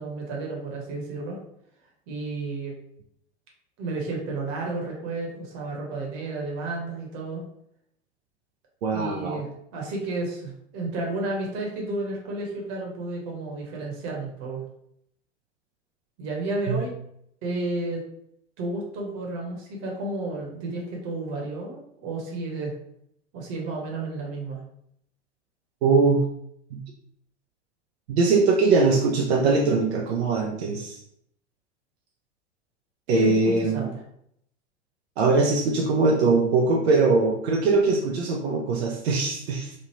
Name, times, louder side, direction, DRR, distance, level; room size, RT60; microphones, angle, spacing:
voice 1, 0.0-1.4 2.1-2.8 3.8-7.4 8.9-14.6 16.2-16.9 17.4-18.0 18.6-22.7 23.3-24.6 33.1-33.3 33.6-33.9, right 2 dB, 45° right, -2 dB, 1.1 m, -32 dB
voice 2, 8.8-9.4 16.7-16.8 25.8-26.2 26.7-26.8 28.1-31.0 33.1-33.9 35.2-39.7, right 3 dB, 65° right, -1 dB, 0.5 m, -21 dB
3.1 x 2.3 x 3.0 m, 0.74 s
figure-of-eight pair, 90°, 35 cm